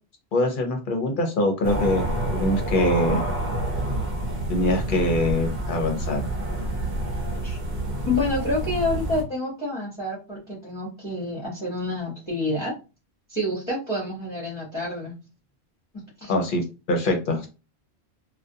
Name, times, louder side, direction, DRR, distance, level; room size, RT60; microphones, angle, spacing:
voice 1, 0.3-2.0 2.3-3.2 4.5-6.3 16.3-16.6 16.9-17.5, left 1 dB, 55° left, 3 dB, 0.8 m, -23 dB
sound 1, 1.6-9.2, right 1 dB, 60° right, 0.8 m, -28 dB
voice 2, 8.0-12.7 13.3-15.1 16.2-16.3, left 2 dB, 30° left, -7 dB, 0.9 m, -28 dB
2.3 x 2.2 x 2.6 m, 0.31 s
omnidirectional pair, 1.1 m